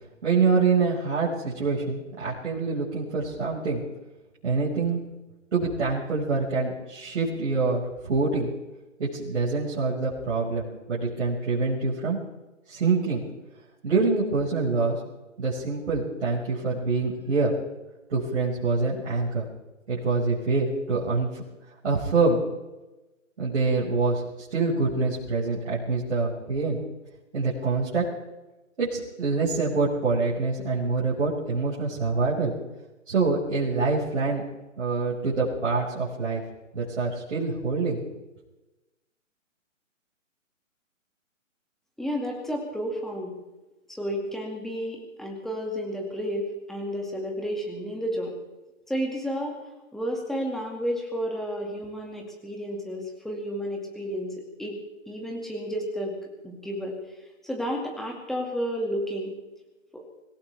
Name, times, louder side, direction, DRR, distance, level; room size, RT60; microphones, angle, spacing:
voice 1, 0.2-3.8 4.4-5.0 5.5-8.5 9.0-12.2 12.7-13.2 13.8-15.0 15.4-17.5 18.1-19.5 19.9-21.4 21.8-22.4 23.4-24.2 24.5-26.8 27.3-28.0 28.8-32.5 33.1-34.4 34.8-36.4 36.7-38.0, right 4 dB, 60° right, -7 dB, 5.6 m, -25 dB
voice 2, 42.0-43.4 44.0-48.3 48.9-49.6 49.9-54.3 54.6-54.8 55.1-56.2 56.4-57.0 57.4-59.3 59.9-60.0, equal, ahead, 0 dB, 2.1 m, -31 dB
25.5 x 16.5 x 3.5 m, 1.1 s
hypercardioid pair, 150°, 39 cm